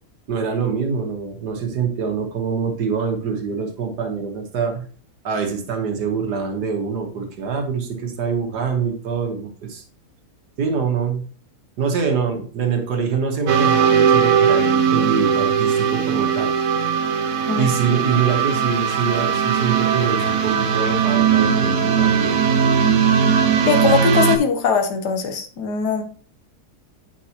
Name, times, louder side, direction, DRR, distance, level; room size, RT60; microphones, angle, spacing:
voice 1, 0.3-4.8 5.2-9.8 10.6-11.2 11.8-16.5 17.6-22.4, right 6 dB, 85° right, 4 dB, 1.9 m, -24 dB
sound 1, 13.5-24.4, right 7 dB, 65° right, 1.1 m, -18 dB
voice 2, 23.7-26.0, left 5 dB, 90° left, 6 dB, 1.6 m, -20 dB
9.0 x 5.4 x 2.9 m, 0.42 s
omnidirectional pair, 1.7 m